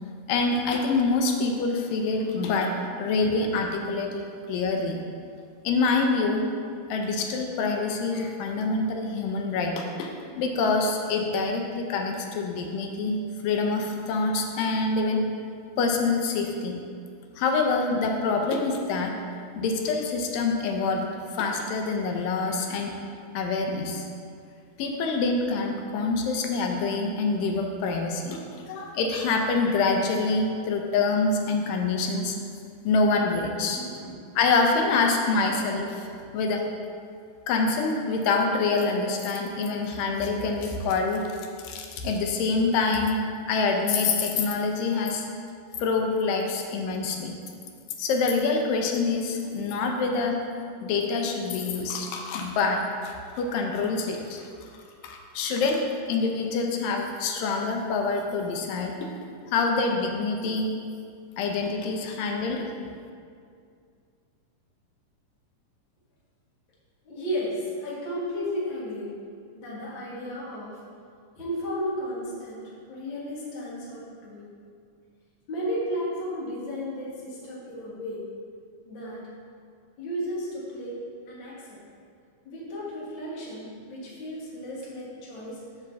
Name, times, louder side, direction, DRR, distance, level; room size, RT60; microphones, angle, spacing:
voice 1, 0.3-4.2 4.5-5.0 5.6-6.4 6.9-15.2 15.8-16.8 17.4-19.1 19.6-22.9 23.3-24.1 24.8-32.4 32.9-33.8 34.4-36.1 36.3-36.6 37.5-41.2 41.6-43.2 43.5-45.3 45.8-47.3 48.0-50.4 50.8-54.5 55.0-59.2 59.5-60.7 61.4-62.6, left 3 dB, 90° left, 2 dB, 2.4 m, -26 dB
voice 2, 33.7-34.1 67.1-69.1 69.5-70.8 71.4-74.5 75.5-78.2 78.9-79.2 80.0-81.8 82.5-85.6, equal, 45° left, -6 dB, 1.9 m, -34 dB
5.8 x 5.1 x 6.8 m, 2.3 s
omnidirectional pair, 3.8 m